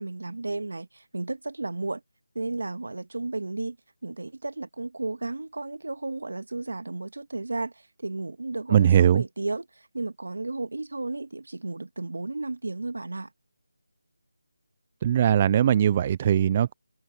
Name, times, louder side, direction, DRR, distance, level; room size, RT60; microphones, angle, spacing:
voice 1, 0.0-2.0 2.4-3.8 4.0-7.7 8.0-9.7 9.9-13.3, right 2 dB, 75° right, 2.0 m, -33 dB
voice 2, 8.7-9.2 15.0-16.7, right 9 dB, 25° right, 0.5 m, -20 dB
figure-of-eight pair, 165°, 0 cm